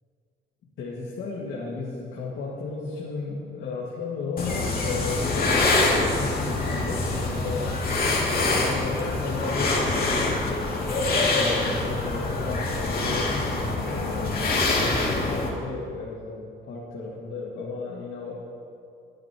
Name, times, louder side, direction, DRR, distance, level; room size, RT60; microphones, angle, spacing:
voice 1, 0.8-7.8 8.3-14.4 14.7-18.5, left 4 dB, 75° left, -4 dB, 2.1 m, -34 dB
sound 1, 4.4-15.5, left 2 dB, 50° left, 2.7 m, -25 dB
24.0 x 10.5 x 3.1 m, 2.4 s
cardioid pair, 90°, 20 cm